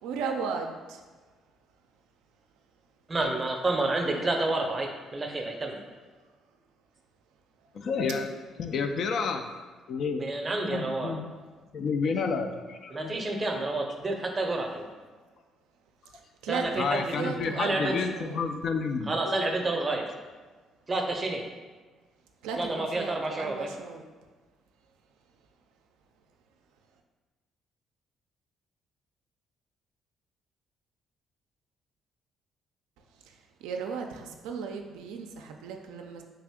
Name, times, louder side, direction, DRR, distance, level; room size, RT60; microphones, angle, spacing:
voice 1, 0.0-1.0 4.0-4.3 16.1-18.4 22.4-24.0 33.2-36.2, right 5 dB, 85° right, 3 dB, 0.3 m, -36 dB
voice 2, 3.1-5.8 10.2-11.1 12.9-14.9 16.5-17.9 19.1-20.1 20.9-21.4 22.6-23.7, right 2 dB, 30° right, 3 dB, 0.6 m, -29 dB
voice 3, 7.7-8.3 8.6-9.6 9.9-10.3 10.7-11.3 11.7-13.1 16.7-19.7, left 5 dB, 60° left, 6 dB, 0.3 m, -30 dB
3.3 x 2.5 x 3.5 m, 1.4 s
supercardioid pair, 65°, 0 cm